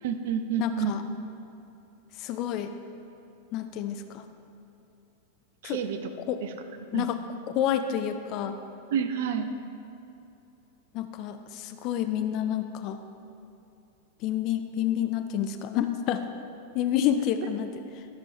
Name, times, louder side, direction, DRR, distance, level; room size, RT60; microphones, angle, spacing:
voice 1, 0.0-1.0 5.6-6.1 6.4-6.5 6.9-7.1 8.9-9.5, right 7 dB, 55° right, 9 dB, 0.6 m, -29 dB
voice 2, 0.6-1.0 2.2-2.7 3.5-4.3 5.6-5.8 6.3-6.4 6.9-7.2 7.5-8.6 10.9-13.0 14.2-16.2 16.7-17.7, left 10 dB, 40° left, 8 dB, 0.5 m, -29 dB
14.0 x 5.3 x 4.4 m, 2.7 s
figure-of-eight pair, 90°, 0 cm